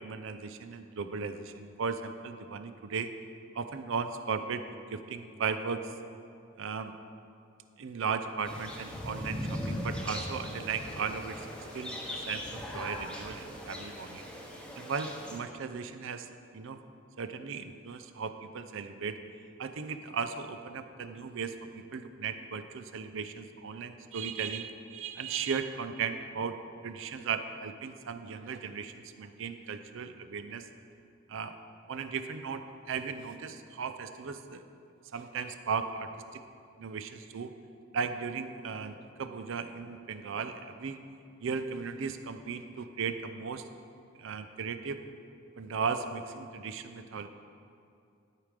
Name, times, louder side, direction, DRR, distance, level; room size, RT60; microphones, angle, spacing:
voice 1, 0.0-3.1 3.5-4.6 4.9-5.9 6.6-7.0 7.8-11.5 11.7-14.3 14.8-16.8 17.2-19.2 19.6-26.6 26.8-30.7 31.3-31.5 31.9-34.6 35.1-36.4 36.8-37.6 37.9-41.0 41.4-43.7 44.2-45.0 45.6-47.3, right 5 dB, 65° right, 9 dB, 0.5 m, -36 dB
sound 1, 8.4-15.4, equal, 5° left, 0.9 m, -39 dB
12.0 x 4.9 x 5.1 m, 2.5 s
head